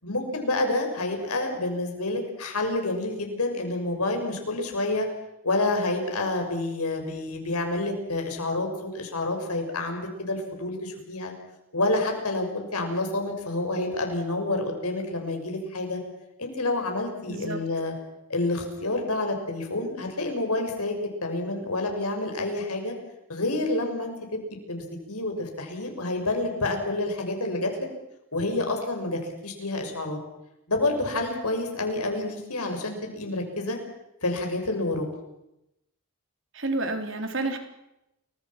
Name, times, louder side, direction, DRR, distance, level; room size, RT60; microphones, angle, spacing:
voice 1, 0.0-5.1 5.4-8.7 8.9-11.3 11.7-16.0 16.4-17.9 18.3-20.9 21.2-22.9 23.3-24.4 24.7-27.8 28.3-30.2 30.7-33.8 34.2-35.0, left 2 dB, 90° left, 3 dB, 6.5 m, -28 dB
voice 2, 17.3-17.6 36.5-37.6, right 2 dB, 60° right, 6 dB, 3.5 m, -29 dB
30.0 x 23.5 x 6.1 m, 0.87 s
head